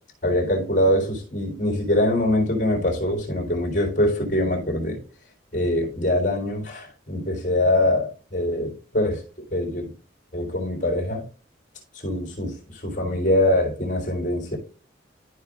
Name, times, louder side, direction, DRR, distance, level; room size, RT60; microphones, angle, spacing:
voice 1, 0.2-5.0 5.5-9.9 10.3-11.2 11.9-14.6, left 1 dB, 40° left, 3.5 m, -23 dB
13.5 x 5.0 x 2.5 m
head